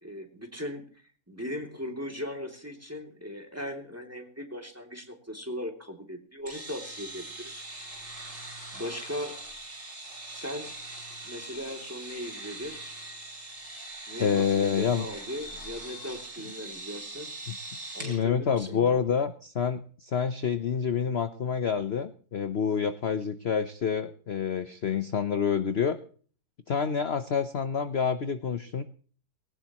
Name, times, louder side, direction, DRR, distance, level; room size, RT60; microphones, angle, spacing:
voice 1, 0.0-0.9 1.3-7.5 8.7-9.4 10.3-10.7 11.2-12.8 14.1-17.3 17.9-18.9, equal, 10° right, 3 dB, 2.8 m, -38 dB
sound 1, 6.5-18.2, right 2 dB, 40° right, 4.2 m, -42 dB
voice 2, 14.2-15.0 17.5-17.6 18.0-26.0 26.7-28.8, left 7 dB, 45° left, 9 dB, 1.0 m, -28 dB
20.0 x 18.0 x 3.1 m, 0.44 s
omnidirectional pair, 1.8 m